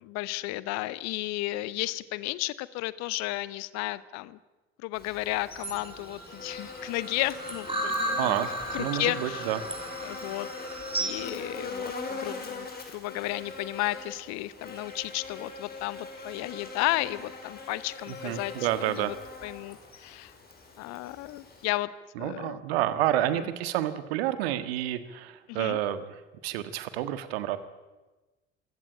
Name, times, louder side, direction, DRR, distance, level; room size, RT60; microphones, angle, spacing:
voice 1, 0.0-4.4 4.8-8.5 8.7-9.5 10.0-10.5 11.0-18.5 18.9-19.1 19.4-20.3 20.8-21.9 22.2-22.6 25.5-25.8, left 18 dB, 55° left, 19 dB, 1.0 m, -33 dB
Buzz, 4.9-21.7, left 4 dB, 30° left, 5.5 m, -42 dB
sound 1, 5.5-11.3, right 1 dB, 15° right, 5.0 m, -35 dB
voice 2, 8.2-8.5 8.8-9.6 18.1-19.1 22.1-27.6, right 13 dB, 65° right, 13 dB, 1.6 m, -29 dB
23.5 x 17.0 x 8.9 m, 1.1 s
figure-of-eight pair, 60°, 33 cm